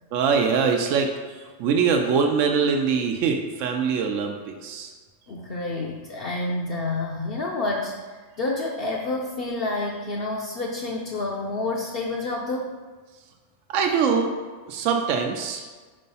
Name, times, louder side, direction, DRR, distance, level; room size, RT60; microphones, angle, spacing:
voice 1, 0.1-4.9 13.7-14.4 14.7-15.6, right 6 dB, 80° right, 3 dB, 1.0 m, -23 dB
voice 2, 5.3-12.7, left 2 dB, 55° left, -2 dB, 0.7 m, -29 dB
5.4 x 3.3 x 5.4 m, 1.4 s
omnidirectional pair, 1.3 m